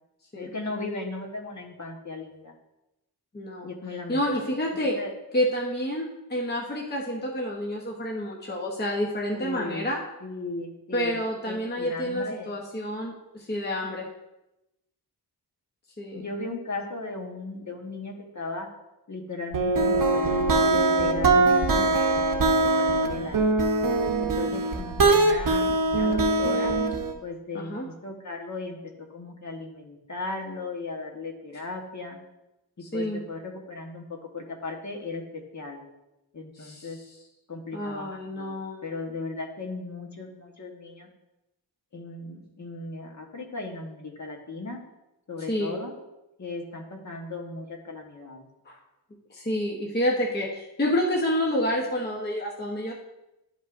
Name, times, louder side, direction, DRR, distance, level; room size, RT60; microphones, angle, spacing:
voice 1, 0.3-2.5 3.6-4.6 4.8-5.1 9.3-9.9 10.2-12.6 16.1-18.7 19.1-20.3 20.6-23.6 24.2-26.7 27.2-28.8 29.1-32.2 32.9-34.0 34.3-35.8 36.3-37.0 37.5-41.1 41.9-44.8 45.3-45.9 46.4-48.5, left 3 dB, 45° left, 1 dB, 1.3 m, -37 dB
voice 2, 3.3-3.7 4.1-5.0 5.3-10.0 10.9-14.1 16.0-16.2 27.5-27.9 32.8-33.2 36.5-37.0 37.7-38.9 45.5-45.7 48.7-48.8 49.3-52.9, equal, 25° left, -1 dB, 0.9 m, -29 dB
sound 1, 19.5-27.1, right 3 dB, 55° right, 0.8 m, -22 dB
12.0 x 5.3 x 2.5 m, 0.94 s
wide cardioid pair, 130°, 40 cm